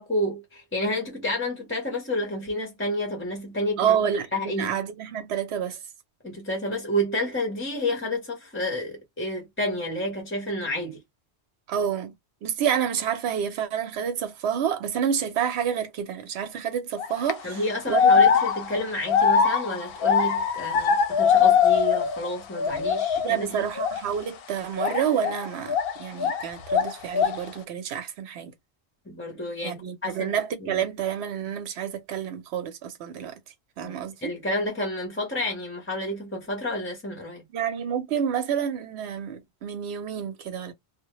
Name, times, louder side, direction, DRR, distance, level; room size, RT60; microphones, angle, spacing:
voice 1, 0.0-4.0 4.3-4.8 6.2-11.0 17.4-23.6 29.1-30.8 33.8-37.4, left 1 dB, 15° left, 0.6 m, -30 dB
voice 2, 3.8-5.8 11.7-12.1 12.4-17.6 17.9-18.3 23.2-28.5 29.6-33.3 33.8-34.3 37.5-40.7, right 8 dB, 80° right, 0.9 m, -28 dB
sound 1, 17.0-17.3 17.9-22.3 22.6-23.3 23.8-24.0 24.8-26.4 26.7-27.5, left 7 dB, 65° left, 0.7 m, -22 dB
2.1 x 2.1 x 2.9 m
omnidirectional pair, 1.1 m